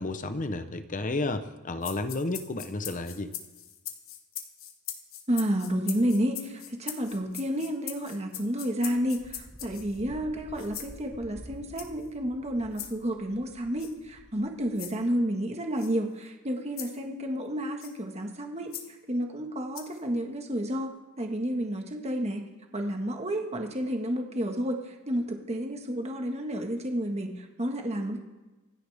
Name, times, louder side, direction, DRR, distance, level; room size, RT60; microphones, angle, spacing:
voice 1, 0.0-3.3, left 2 dB, 40° left, 10 dB, 0.9 m, -32 dB
sound 1, 1.8-10.0 10.6-10.9 11.8-12.1 12.8-12.9 13.8-13.9 14.8-15.0 15.8-15.9 16.8-17.0 17.8-18.0 18.7-18.9 19.8-20.0, left 10 dB, 70° left, 1.3 m, -40 dB
voice 2, 5.3-18.7 19.1-20.9 21.2-22.4 22.7-28.2, equal, 30° right, 3 dB, 1.6 m, -30 dB
Wind, 9.0-14.9, equal, 10° right, 1.5 m, -50 dB
26.0 x 10.0 x 3.6 m, 1.1 s
head